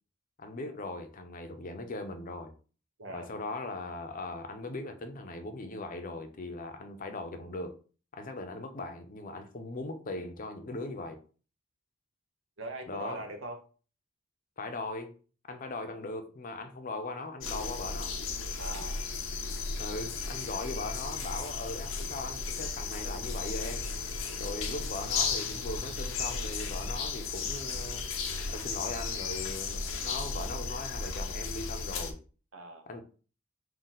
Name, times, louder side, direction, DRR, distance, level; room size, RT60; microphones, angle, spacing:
voice 1, 0.4-2.5 3.1-7.7 8.1-11.2 12.9-13.2 14.6-15.1 15.5-18.2 19.8-23.9 24.4-28.1 28.5-32.2 32.9-33.0, left 2 dB, 45° left, 0.6 m, -39 dB
voice 2, 3.0-3.3 12.6-13.6 18.6-19.1 32.5-32.9, right 2 dB, 75° right, 0.7 m, -41 dB
sound 1, 17.4-32.1, left 4 dB, 80° left, 0.7 m, -35 dB
3.7 x 2.3 x 4.1 m
head